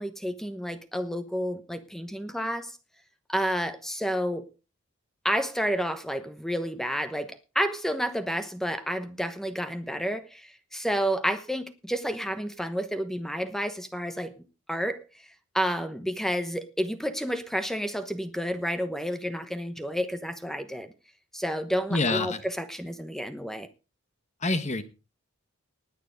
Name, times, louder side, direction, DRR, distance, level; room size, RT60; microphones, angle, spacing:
voice 1, 0.0-2.8 3.3-4.5 5.2-14.3 14.7-15.3 15.5-20.9 21.3-23.7, equal, ahead, 1.0 m, -30 dB
voice 2, 21.9-22.4 24.4-24.8, left 2 dB, 30° left, 1.3 m, -26 dB
19.5 x 6.7 x 5.1 m
head